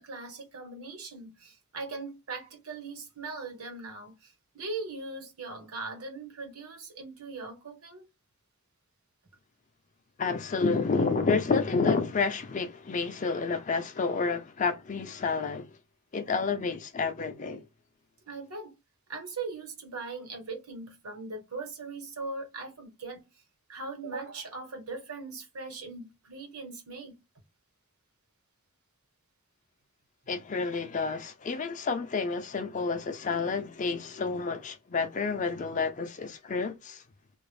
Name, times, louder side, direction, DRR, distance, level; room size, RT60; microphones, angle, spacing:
voice 1, 0.0-8.0 18.3-18.7 19.1-23.3 23.7-27.2, right 3 dB, 85° right, 1.1 m, -40 dB
voice 2, 10.2-15.7 16.1-17.6 30.3-37.0, left 4 dB, 35° left, 0.4 m, -29 dB
2.4 x 2.0 x 3.1 m
head